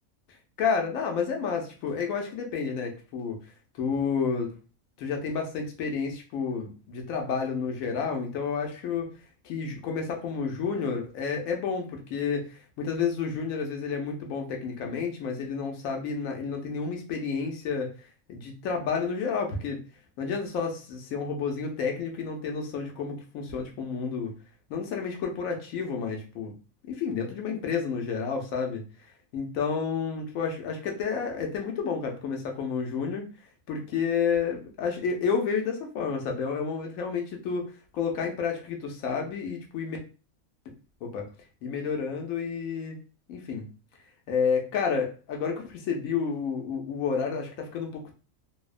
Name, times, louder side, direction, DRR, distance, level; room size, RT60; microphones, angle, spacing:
voice 1, 0.6-3.4 3.8-4.5 5.0-9.1 9.4-17.9 18.3-19.8 20.2-24.3 24.7-26.5 26.9-28.8 29.3-33.2 33.7-40.0 41.0-41.3 41.6-43.0 43.3-43.7 44.3-48.1, left 5 dB, 80° left, 2 dB, 1.0 m, -30 dB
2.6 x 2.1 x 2.3 m, 0.35 s
omnidirectional pair, 1.4 m